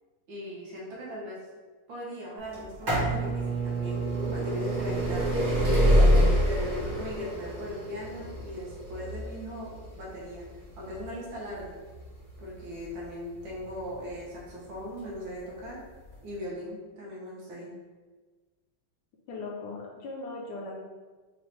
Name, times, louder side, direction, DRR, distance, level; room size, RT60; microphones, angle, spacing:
voice 1, 0.3-1.4 1.9-5.4 6.4-9.7 10.0-10.4 10.8-11.7 12.4-15.8 16.2-17.7, equal, 65° right, -4 dB, 1.7 m, -39 dB
sound 1, 2.5-14.2 15.0-15.1 16.1-16.2 16.3-16.4, equal, 35° right, 1.4 m, -26 dB
voice 2, 4.6-5.1 6.0-6.2 19.3-20.8, left 3 dB, 70° left, -2 dB, 1.0 m, -40 dB
4.4 x 3.1 x 3.0 m, 1.3 s
omnidirectional pair, 2.4 m